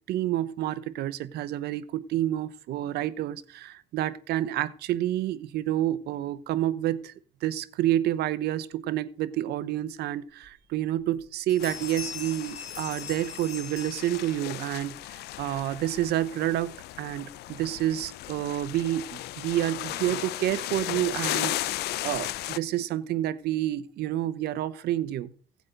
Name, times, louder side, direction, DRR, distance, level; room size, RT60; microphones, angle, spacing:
voice 1, 0.1-7.1 7.4-25.3, right 13 dB, 75° right, 0.8 m, -29 dB
Bell, 10.4-10.5 11.0-11.2 11.5-14.6, left 6 dB, 40° left, 3.0 m, -41 dB
sound 1, 11.6-22.6, left 16 dB, 75° left, 0.5 m, -36 dB
16.5 x 8.4 x 3.9 m
cardioid pair, 110°, 17 cm